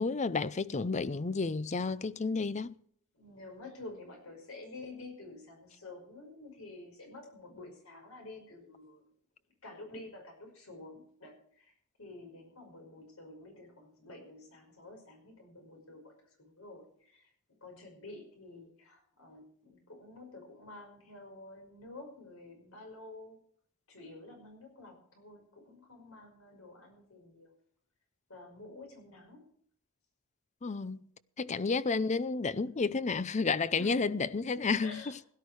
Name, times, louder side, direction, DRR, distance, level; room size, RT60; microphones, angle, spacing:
voice 1, 0.0-2.8 30.6-31.0 31.4-35.0, left 4 dB, 35° left, 0.5 m, -31 dB
voice 2, 3.1-9.0 9.6-11.7 12.0-16.1 16.4-17.3 17.6-23.4 23.9-27.5 28.3-29.5 31.5-31.6 33.8-34.1 34.8-35.2, left 2 dB, 70° left, 5.4 m, -50 dB
17.0 x 11.5 x 4.7 m
head